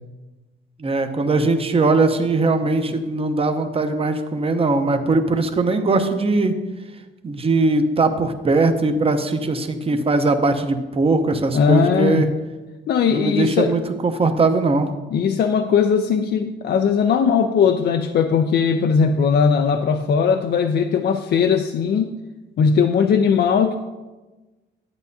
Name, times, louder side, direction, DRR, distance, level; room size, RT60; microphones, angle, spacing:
voice 1, 0.8-6.6 7.2-12.3 13.1-14.9, right 3 dB, 30° right, 7 dB, 0.8 m, -20 dB
voice 2, 11.5-12.3 12.9-13.7 15.1-22.1 22.6-23.7, left 6 dB, 55° left, 6 dB, 0.5 m, -19 dB
10.5 x 8.3 x 2.7 m, 1.2 s
cardioid pair, 90°, 20 cm